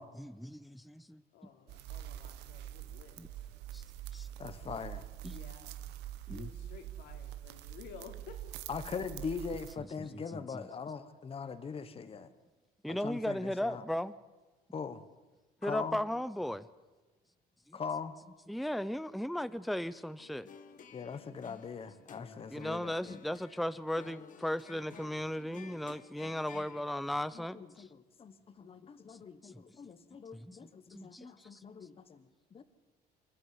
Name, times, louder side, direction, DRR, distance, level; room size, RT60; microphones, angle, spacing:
voice 1, 0.2-1.2 3.2-3.3 3.7-3.8 4.1-4.3 5.2-5.4 6.3-6.5 10.3-10.7 12.8-14.1 15.6-16.6 17.7-17.8 18.5-20.5 22.5-27.9 29.1-29.2 29.4-29.6 30.3-30.6 30.9-31.6, left 1 dB, ahead, 15 dB, 0.7 m, -36 dB
voice 2, 1.3-3.4 5.3-5.8 6.3-8.4, left 7 dB, 80° left, 4 dB, 3.5 m, -53 dB
sound 1, 1.7-9.7, right 12 dB, 90° right, 1.3 m, -45 dB
voice 3, 4.4-5.1 8.7-12.3 12.9-13.8 14.7-15.0 15.6-16.0 17.7-18.2 20.9-23.2 27.3-32.6, left 5 dB, 35° left, 11 dB, 1.3 m, -41 dB
sound 2, 20.2-26.9, left 6 dB, 50° left, 1.8 m, -54 dB
27.5 x 12.5 x 9.6 m, 1.2 s
cardioid pair, 110°, 17 cm